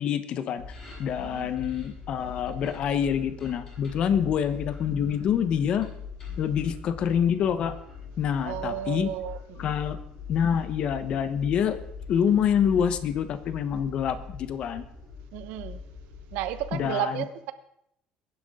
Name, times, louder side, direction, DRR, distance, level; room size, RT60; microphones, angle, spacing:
voice 1, 0.0-5.9 6.3-7.7 8.2-9.1 9.6-10.0 10.3-11.8 12.1-14.8 16.7-17.2, left 8 dB, 45° left, 11 dB, 1.1 m, -26 dB
sound 1, 0.6-16.9, left 6 dB, 25° left, 6.5 m, -41 dB
voice 2, 8.4-9.7 15.3-15.8 16.3-17.5, right 13 dB, 75° right, 11 dB, 1.1 m, -33 dB
22.5 x 10.5 x 3.8 m, 0.74 s
cardioid pair, 165°, 2 cm